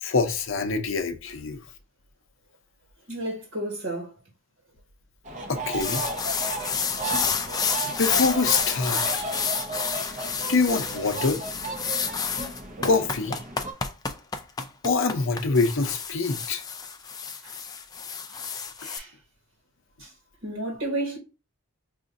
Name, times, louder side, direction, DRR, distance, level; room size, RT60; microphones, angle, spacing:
voice 1, 0.0-1.6 5.5-6.0 8.0-9.0 10.5-11.4 12.8-13.4 14.8-16.6, left 4 dB, 65° left, 0.7 m, -25 dB
voice 2, 3.1-4.1 12.8-12.9 17.4-17.6 18.3-18.4 18.8-19.1 20.0-20.1 20.4-21.2, right 1 dB, 70° right, 1.3 m, -32 dB
sound 1, 5.2-13.7, right 3 dB, 35° right, 0.7 m, -34 dB
sound 2, 5.8-19.0, left 6 dB, 20° left, 0.3 m, -30 dB
4.9 x 2.5 x 2.6 m
head